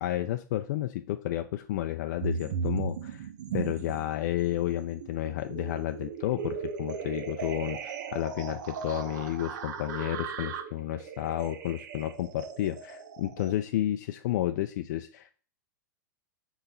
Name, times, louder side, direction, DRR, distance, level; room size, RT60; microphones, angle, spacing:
voice 1, 0.0-15.3, left 13 dB, 65° left, 7 dB, 0.4 m, -31 dB
sound 1, 2.2-4.1 4.5-13.5, right 6 dB, 70° right, 0.9 m, -37 dB
4.6 x 4.0 x 5.5 m, 0.43 s
hypercardioid pair, 115°, 10 cm